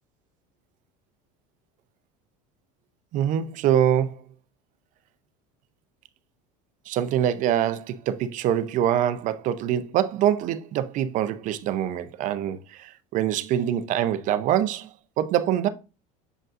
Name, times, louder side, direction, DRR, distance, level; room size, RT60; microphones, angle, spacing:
voice 1, 3.1-4.2 6.9-15.7, right 10 dB, 45° right, 0.6 m, -24 dB
7.6 x 5.1 x 2.5 m
cardioid pair, 140°, 18 cm